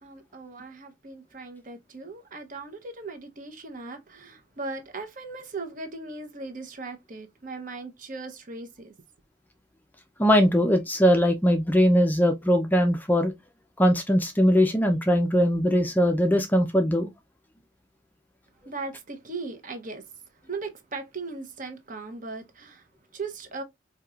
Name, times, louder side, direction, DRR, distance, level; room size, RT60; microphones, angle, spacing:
voice 1, 0.0-8.9 18.6-20.1 20.4-23.6, right 3 dB, 40° right, 0.8 m, -38 dB
voice 2, 10.2-13.3 13.8-17.1, equal, 10° left, 0.4 m, -21 dB
4.5 x 2.9 x 2.3 m
head